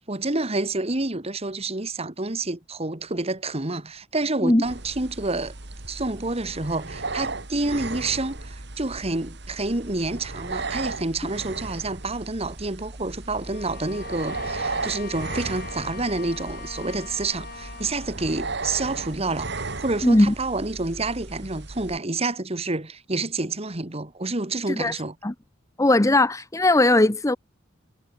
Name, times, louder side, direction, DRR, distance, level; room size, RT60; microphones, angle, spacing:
voice 1, 0.1-5.5 5.9-19.5 19.8-25.2, right 2 dB, 30° right, 1.9 m, -28 dB
sound 1, 4.6-22.0, right 3 dB, 60° right, 2.7 m, -35 dB
Bowed string instrument, 13.4-18.2, left 5 dB, 50° left, 2.2 m, -41 dB
voice 2, 20.0-20.3 24.7-24.9 25.2-25.3 25.8-27.4, left 2 dB, 15° left, 0.7 m, -19 dB
head